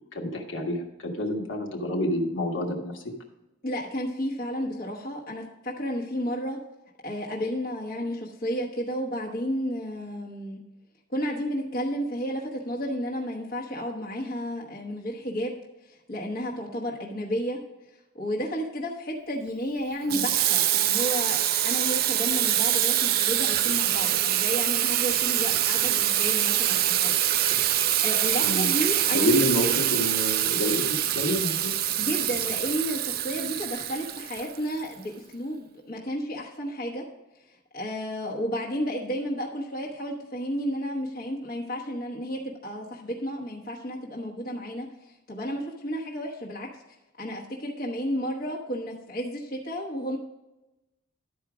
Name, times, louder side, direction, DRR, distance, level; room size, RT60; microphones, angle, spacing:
voice 1, 0.1-3.0 20.1-20.2 28.4-28.7 29.1-30.8 31.1-31.8, left 1 dB, 65° left, 1 dB, 1.4 m, -28 dB
voice 2, 3.6-6.6 7.0-10.6 11.1-15.5 15.8-17.6 18.1-27.1 28.0-29.4 31.9-37.0 37.7-46.7 47.2-50.2, equal, 45° left, -4 dB, 1.1 m, -32 dB
Water tap faucet / Sink (filling or washing), 20.1-34.9, right 12 dB, 50° right, 0.4 m, -25 dB
11.5 x 4.8 x 4.9 m, 0.99 s
head